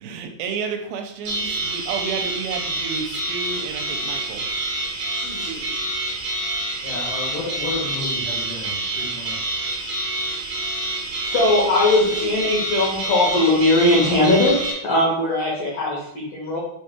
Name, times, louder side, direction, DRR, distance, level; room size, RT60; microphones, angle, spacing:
voice 1, 0.0-4.4, right 5 dB, 85° right, 4 dB, 2.4 m, -31 dB
sound 1, 1.2-14.7, right 2 dB, 65° right, 2.0 m, -27 dB
voice 2, 6.4-9.6, left 2 dB, 65° left, -4 dB, 2.8 m, -33 dB
voice 3, 11.2-16.6, left 2 dB, 85° left, -5 dB, 1.3 m, -19 dB
7.4 x 3.0 x 2.2 m, 0.76 s
omnidirectional pair, 4.2 m